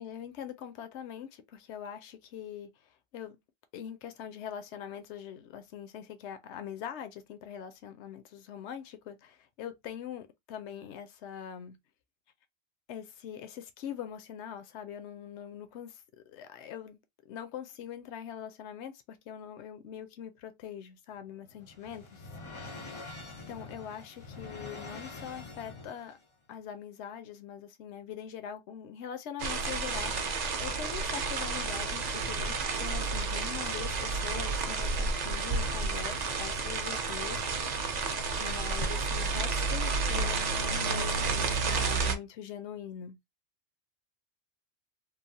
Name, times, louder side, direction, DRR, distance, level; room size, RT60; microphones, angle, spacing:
voice 1, 0.0-2.7 3.1-3.4 3.7-11.8 12.9-17.0 17.3-22.3 23.5-26.2 26.5-37.6 38.4-43.2, left 9 dB, 85° left, 0.9 m, -43 dB
sound 1, 21.1-26.2, left 3 dB, 40° left, 0.5 m, -45 dB
sound 2, 29.4-42.2, right 4 dB, 50° right, 0.5 m, -31 dB
3.2 x 2.0 x 2.6 m
omnidirectional pair, 1.1 m